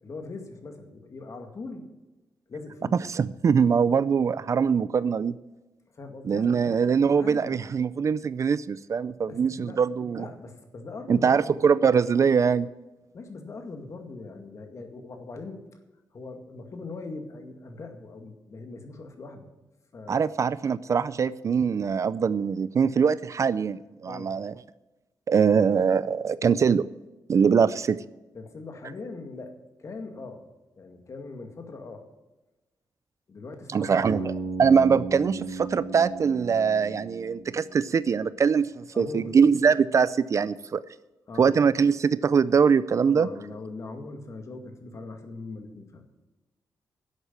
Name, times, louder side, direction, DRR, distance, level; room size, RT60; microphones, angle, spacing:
voice 1, 0.0-1.9 2.5-3.0 5.9-6.8 7.2-7.6 9.3-9.8 10.2-11.6 13.1-15.6 16.1-19.5 19.9-20.3 24.1-24.3 28.3-29.5 29.8-30.4 30.8-32.1 33.3-34.3 38.9-39.4 41.3-41.6 42.8-46.0, left 3 dB, 45° left, 5 dB, 2.1 m, -40 dB
voice 2, 3.1-5.4 6.3-10.3 11.1-12.7 20.1-24.5 25.3-26.8 27.3-28.0 33.7-34.3 34.6-40.8 41.4-43.3, right 6 dB, 45° right, 17 dB, 0.4 m, -22 dB
Bass guitar, 34.0-38.0, right 3 dB, 70° right, 2.3 m, -35 dB
11.5 x 8.0 x 8.5 m, 1.1 s
wide cardioid pair, 150°, 7 cm